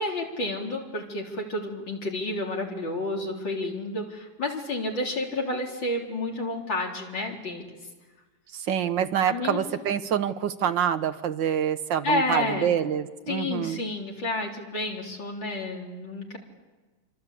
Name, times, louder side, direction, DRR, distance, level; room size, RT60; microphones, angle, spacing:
voice 1, 0.0-7.7 9.3-9.6 12.0-12.7 13.3-16.4, left 2 dB, 70° left, 0 dB, 4.4 m, -30 dB
voice 2, 8.5-13.8, right 9 dB, 70° right, 10 dB, 1.7 m, -26 dB
27.0 x 25.0 x 8.5 m, 1.3 s
omnidirectional pair, 2.1 m